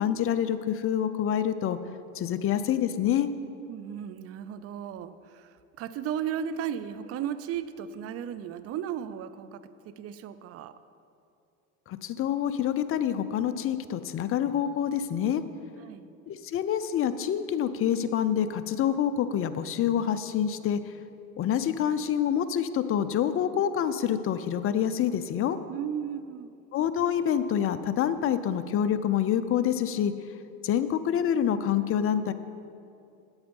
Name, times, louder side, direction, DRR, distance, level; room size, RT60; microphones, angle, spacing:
voice 1, 0.0-1.8 2.1-3.3 11.9-15.4 16.3-20.8 21.4-25.6 26.7-30.1 30.6-32.3, left 9 dB, 35° left, 12 dB, 0.5 m, -27 dB
voice 2, 3.7-10.7 15.8-16.1 25.7-26.5, right 9 dB, 40° right, 13 dB, 0.5 m, -35 dB
8.0 x 8.0 x 5.3 m, 2.5 s
supercardioid pair, 95°, 40 cm